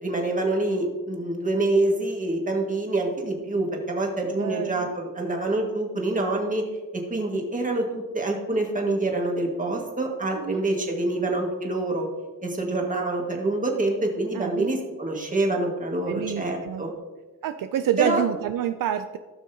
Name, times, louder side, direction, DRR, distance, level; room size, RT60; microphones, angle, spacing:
voice 1, 0.0-6.6 6.9-12.1 12.4-16.9 18.0-18.2, right 2 dB, 25° right, 1 dB, 1.8 m, -26 dB
voice 2, 4.4-4.9 10.3-10.6 14.3-14.7 16.1-16.8 17.4-19.2, right 10 dB, 75° right, 9 dB, 0.5 m, -28 dB
15.5 x 6.2 x 2.8 m, 1.3 s
cardioid pair, 105°, 34 cm